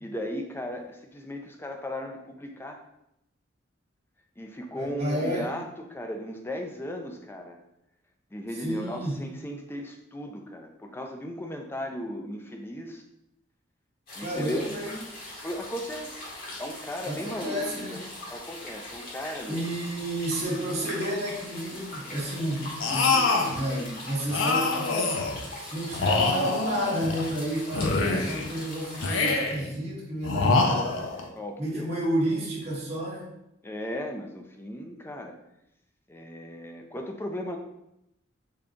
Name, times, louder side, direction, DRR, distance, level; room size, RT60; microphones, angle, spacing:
voice 1, 0.0-2.8 4.4-7.6 8.3-13.0 14.1-14.6 15.4-16.3 16.6-17.6 17.9-18.0 18.3-19.7 31.4-31.9 33.6-35.4 36.1-37.6, left 1 dB, 10° left, 3 dB, 0.3 m, -36 dB
voice 2, 4.7-5.4 8.6-9.2 14.2-15.0 17.0-18.0 19.5-31.2 31.6-33.3, right 1 dB, 35° right, -7 dB, 1.0 m, -31 dB
sound 1, 14.1-29.3, left 1 dB, 45° left, 1.1 m, -41 dB
sound 2, 22.8-23.6 24.3-25.4 25.9-27.3 27.7-28.5 29.0-29.7 30.2-31.3, left 3 dB, 85° left, 0.5 m, -25 dB
3.6 x 2.3 x 3.8 m, 0.83 s
head